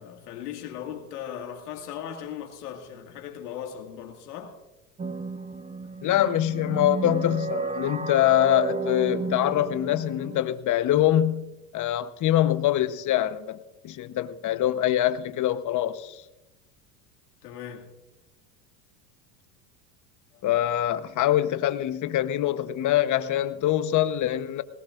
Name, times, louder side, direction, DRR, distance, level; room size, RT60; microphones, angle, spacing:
voice 1, 0.0-4.6 17.4-17.9 20.3-20.5, left 9 dB, 85° left, 2.1 m, -38 dB
sound 1, 5.0-10.4, right 4 dB, 15° right, 0.9 m, -32 dB
voice 2, 6.0-16.2 20.4-24.6, left 12 dB, 40° left, 1.0 m, -24 dB
20.0 x 18.5 x 2.5 m
hypercardioid pair, 95°, 46 cm